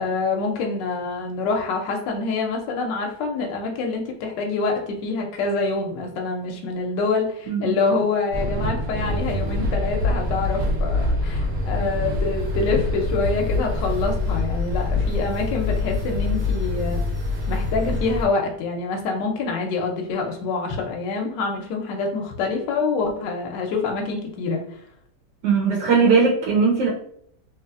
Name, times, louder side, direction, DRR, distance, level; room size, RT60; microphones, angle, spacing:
voice 1, 0.0-17.0 17.5-24.8, left 4 dB, 85° left, 2 dB, 1.3 m, -26 dB
sound 1, 8.3-18.2, left 2 dB, 60° right, 1.3 m, -25 dB
voice 2, 25.4-26.9, right 5 dB, 75° right, -5 dB, 1.4 m, -19 dB
3.2 x 3.0 x 2.4 m, 0.67 s
omnidirectional pair, 1.9 m